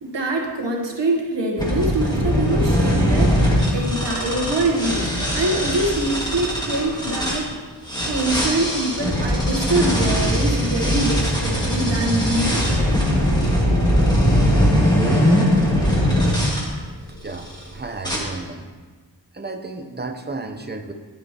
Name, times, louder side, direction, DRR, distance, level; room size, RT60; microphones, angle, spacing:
voice 1, 0.0-7.5 8.0-13.0, right 2 dB, 90° right, 1 dB, 1.2 m, -24 dB
sound 1, 1.6-7.4 7.9-16.7 17.3-17.6 18.0-18.2, equal, 10° left, 1.9 m, -20 dB
voice 2, 17.2-18.6 19.3-20.9, right 3 dB, 25° right, 6 dB, 0.7 m, -33 dB
10.0 x 8.2 x 2.9 m, 1.4 s
wide cardioid pair, 60°, 42 cm